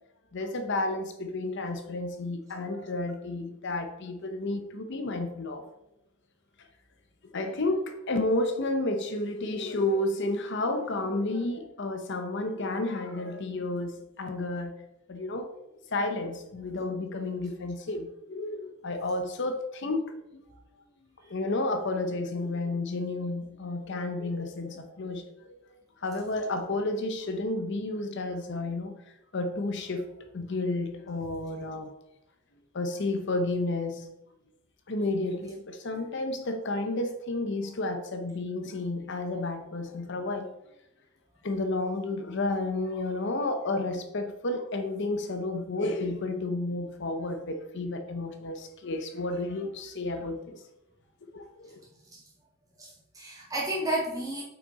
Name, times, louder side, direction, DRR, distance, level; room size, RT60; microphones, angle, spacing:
voice 1, 0.3-5.7 6.6-6.7 7.3-14.8 15.1-15.5 15.9-20.0 20.3-20.5 21.3-25.3 26.0-29.0 29.3-31.9 32.7-34.1 34.9-40.5 41.4-50.6 51.3-51.7, left 2 dB, 55° left, 0.7 m, -31 dB
voice 2, 52.8-54.4, right 1 dB, 15° right, 2.4 m, -32 dB
7.2 x 5.8 x 4.0 m
head